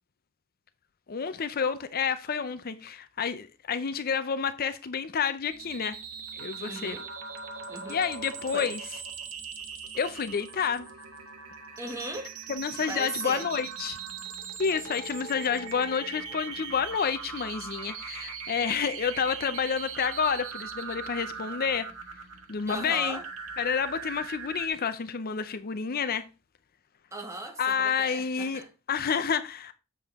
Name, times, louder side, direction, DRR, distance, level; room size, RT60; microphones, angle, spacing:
voice 1, 1.1-6.0 6.3-7.0 7.9-8.8 10.0-10.9 12.5-14.0 14.6-21.9 22.5-23.2 23.6-26.2 27.6-29.7, left 6 dB, 45° left, 0.5 m, -29 dB
sound 1, 5.5-24.7, right 6 dB, 90° right, 1.7 m, -40 dB
voice 2, 6.6-7.1 7.7-8.0 8.5-8.7 11.8-12.3 12.9-13.5 22.7-23.2 27.1-28.7, right 1 dB, 15° right, 1.7 m, -37 dB
7.7 x 6.9 x 3.5 m
head